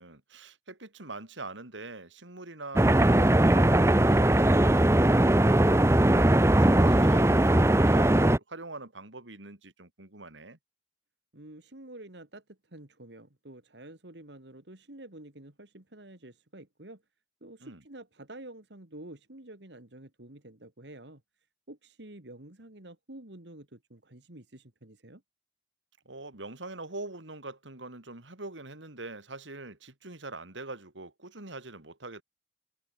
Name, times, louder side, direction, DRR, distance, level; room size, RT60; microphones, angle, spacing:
voice 1, 0.0-5.9 6.4-10.6 17.6-17.8 26.1-32.2, right 2 dB, 90° right, 3.5 m, -43 dB
sound 1, 2.8-8.4, right 1 dB, 15° right, 0.7 m, -20 dB
voice 2, 11.3-17.0 17.4-21.2 21.7-25.2, right 1 dB, 70° right, 2.6 m, -48 dB
head